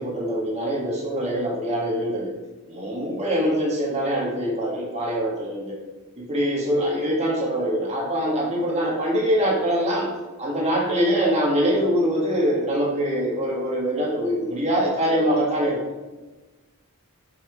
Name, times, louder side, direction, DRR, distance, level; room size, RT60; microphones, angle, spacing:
voice 1, 0.0-2.3 2.7-5.7 6.2-10.1 10.4-16.2, equal, 30° right, -3 dB, 1.6 m, -24 dB
5.8 x 5.7 x 4.6 m, 1.2 s
head